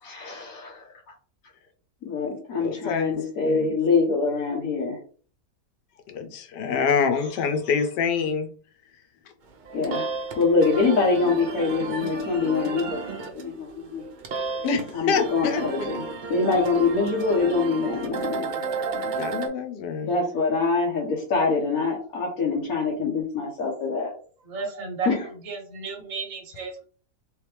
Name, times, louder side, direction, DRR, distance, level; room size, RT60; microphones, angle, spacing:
voice 1, 0.0-0.9 2.0-5.0 9.7-13.1 13.4-14.0 14.9-18.4 20.0-24.1 25.1-25.2, left 4 dB, 60° left, -2 dB, 1.3 m, -24 dB
voice 2, 2.6-3.7 6.1-8.5 14.6-15.9 19.1-20.1, left 6 dB, 90° left, 7 dB, 1.3 m, -26 dB
sound 1, 9.5-19.5, right 4 dB, 85° right, 0.4 m, -33 dB
voice 3, 24.4-26.9, right 4 dB, 55° right, 0 dB, 1.4 m, -33 dB
3.3 x 3.2 x 3.3 m, 0.41 s
omnidirectional pair, 1.8 m